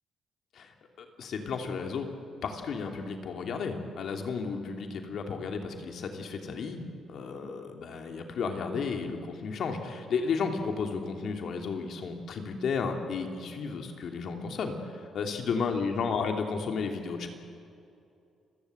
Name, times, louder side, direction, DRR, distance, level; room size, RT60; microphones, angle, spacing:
voice 1, 0.5-2.1 2.4-17.3, left 5 dB, 65° left, 4 dB, 2.9 m, -33 dB
29.5 x 16.0 x 8.0 m, 2.5 s
cardioid pair, 90°, 0 cm